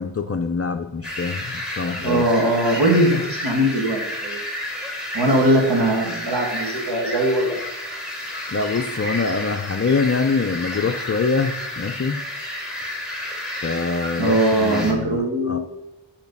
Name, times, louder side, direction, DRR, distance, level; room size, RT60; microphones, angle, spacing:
voice 1, 0.0-2.2 8.5-12.2 13.6-15.6, left 4 dB, 30° left, 5 dB, 0.5 m, -24 dB
sound 1, 1.0-14.9, left 1 dB, ahead, 1.9 m, -31 dB
voice 2, 2.0-3.2 3.4-4.4 5.1-7.6 14.2-15.6, right 1 dB, 60° right, 0 dB, 2.0 m, -20 dB
9.6 x 5.2 x 5.4 m, 0.94 s
wide cardioid pair, 150°, 46 cm